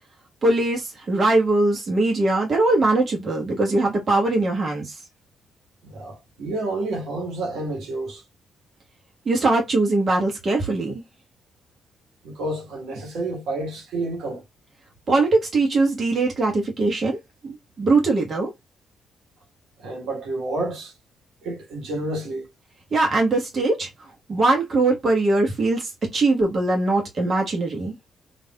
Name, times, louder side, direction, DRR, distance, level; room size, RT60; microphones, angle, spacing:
voice 1, 0.4-5.0 9.2-11.0 15.1-18.5 22.9-23.9 24.3-27.9, right 2 dB, 50° right, 1.0 m, -21 dB
voice 2, 5.8-8.2 12.2-14.4 19.8-20.9 21.4-22.5, right 2 dB, 70° right, 1.2 m, -29 dB
3.2 x 2.5 x 2.2 m
hypercardioid pair, 40°, 0 cm